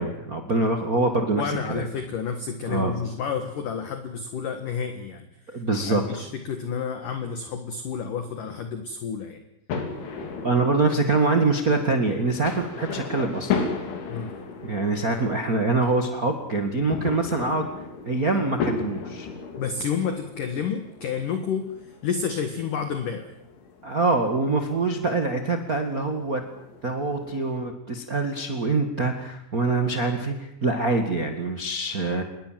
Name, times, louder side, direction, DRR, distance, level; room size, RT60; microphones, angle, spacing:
voice 1, 0.0-1.4 1.7-1.9 2.7-2.9 5.5-6.0 10.4-13.8 14.6-17.7 18.0-19.3 23.8-26.4 26.8-32.2, right 3 dB, 75° right, 5 dB, 0.8 m, -24 dB
voice 2, 1.4-9.4 14.1-14.4 19.6-21.8 22.0-23.3, left 6 dB, 55° left, 8 dB, 2.7 m, -30 dB
sound 1, 9.7-27.5, left 5 dB, 85° left, 5.8 m, -36 dB
27.5 x 22.0 x 7.7 m, 0.81 s
omnidirectional pair, 5.3 m